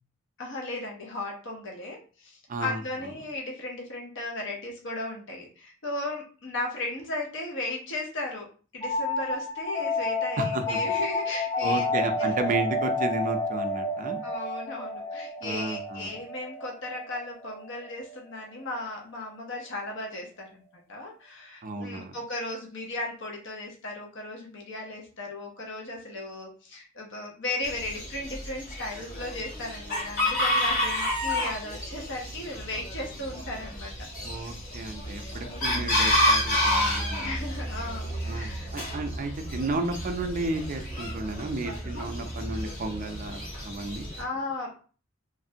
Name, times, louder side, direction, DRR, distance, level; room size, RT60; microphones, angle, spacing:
voice 1, 0.4-8.5 8.7-11.8 12.2-12.4 14.2-20.6 20.9-33.9 34.2-34.5 35.5-35.8 37.2-38.7 44.2-44.8, left 2 dB, 65° left, 0 dB, 0.8 m, -36 dB
voice 2, 2.5-2.8 10.4-10.8 11.6-14.2 15.4-16.1 21.6-22.1 34.2-37.3 38.2-44.1, right 2 dB, 40° right, 6 dB, 0.4 m, -33 dB
sound 1, 8.8-18.2, left 2 dB, 10° left, 0.5 m, -30 dB
Chicken rooster, 27.6-44.2, left 1 dB, 45° left, 1.2 m, -30 dB
3.2 x 2.5 x 2.7 m, 0.37 s
head